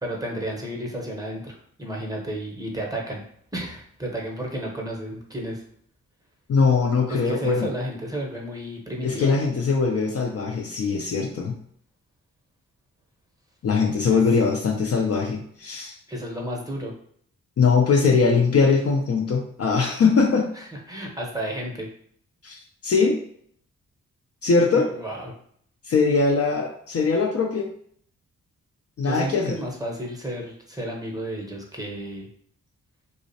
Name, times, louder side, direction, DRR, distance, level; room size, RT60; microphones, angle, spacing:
voice 1, 0.0-3.2 3.5-5.6 7.1-9.3 14.1-14.2 16.1-16.9 20.6-21.9 24.9-25.3 29.0-32.3, right 1 dB, 10° right, -1 dB, 0.8 m, -32 dB
voice 2, 6.5-7.7 9.0-11.6 13.6-16.0 17.6-20.5 22.4-23.2 24.4-24.9 25.9-27.7 29.0-29.6, left 4 dB, 45° left, 1 dB, 0.5 m, -21 dB
2.4 x 2.1 x 2.7 m, 0.63 s
supercardioid pair, 45°, 34 cm